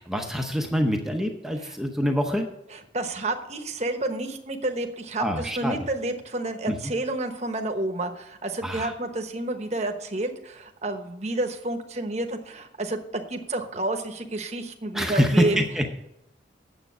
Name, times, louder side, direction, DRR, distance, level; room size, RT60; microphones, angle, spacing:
voice 1, 0.0-2.5 5.2-5.8 6.7-6.9 8.6-8.9 14.9-16.0, equal, ahead, 3 dB, 0.8 m, -25 dB
voice 2, 2.9-15.6, right 2 dB, 35° right, 5 dB, 1.1 m, -30 dB
9.4 x 7.7 x 6.1 m, 0.85 s
head